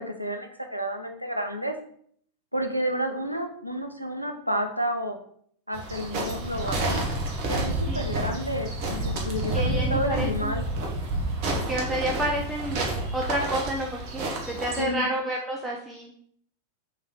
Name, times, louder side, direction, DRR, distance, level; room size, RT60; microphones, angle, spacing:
voice 1, 0.0-1.7 2.5-5.2 5.7-7.1 7.5-10.6 14.8-15.1, equal, 90° right, 5 dB, 0.5 m, -30 dB
sound 1, 5.7-14.8, right 2 dB, 45° right, 0.9 m, -29 dB
voice 2, 9.5-10.5 11.7-12.8 13.1-16.1, right 1 dB, 10° right, -1 dB, 0.5 m, -30 dB
3.4 x 3.1 x 3.6 m, 0.63 s
figure-of-eight pair, 90°, 0 cm